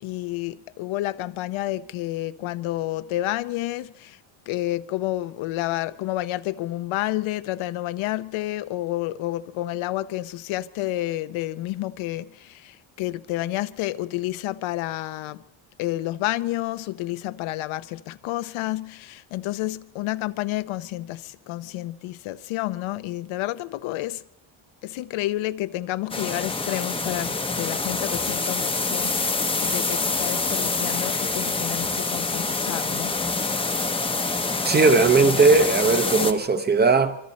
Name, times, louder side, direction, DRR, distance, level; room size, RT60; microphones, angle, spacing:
voice 1, 0.0-4.2 4.5-15.4 15.8-24.2 24.8-29.1 29.6-33.2, left 15 dB, 80° left, 0.8 m, -30 dB
sound 1, 26.1-36.3, left 3 dB, 10° left, 0.8 m, -26 dB
voice 2, 34.6-37.2, right 4 dB, 20° right, 0.9 m, -18 dB
25.5 x 24.0 x 4.2 m
cardioid pair, 165°, 48 cm